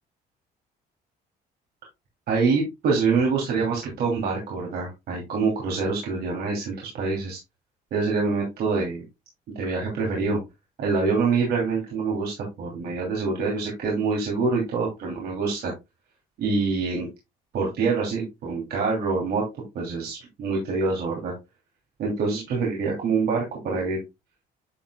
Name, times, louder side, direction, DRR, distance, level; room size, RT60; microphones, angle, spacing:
voice 1, 2.3-7.4 7.9-9.0 9.5-10.4 10.8-15.7 16.4-17.1 17.5-21.3 22.0-24.0, right 4 dB, 70° right, -2 dB, 2.7 m, -25 dB
9.9 x 6.1 x 2.2 m, 0.23 s
cardioid pair, 110°, 17 cm